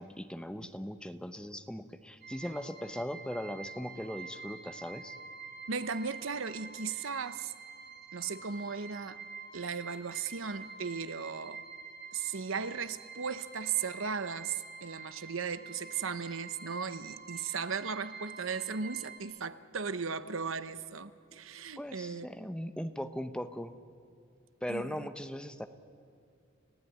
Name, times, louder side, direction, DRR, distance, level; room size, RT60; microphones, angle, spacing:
voice 1, 0.0-5.2 21.8-23.7 24.6-25.7, equal, 5° left, 0.9 m, -39 dB
sound 1, 2.2-19.2, right 5 dB, 55° right, 2.3 m, -47 dB
voice 2, 5.7-7.5 8.1-9.2 9.5-11.6 12.1-22.3 22.6-22.7 24.7-25.1, right 6 dB, 70° right, 0.9 m, -36 dB
30.0 x 16.0 x 9.5 m
head